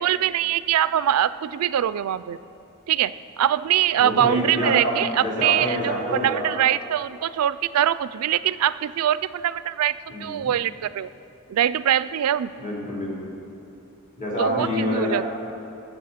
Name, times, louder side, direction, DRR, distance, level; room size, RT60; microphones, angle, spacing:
voice 1, 0.0-2.4 2.9-11.1 11.5-12.5 14.4-15.3, right 10 dB, 80° right, 15 dB, 0.3 m, -23 dB
voice 2, 4.0-6.6 10.1-10.5 12.6-13.3 14.2-15.3, equal, 35° left, -5 dB, 3.6 m, -27 dB
20.0 x 7.3 x 5.7 m, 2.8 s
head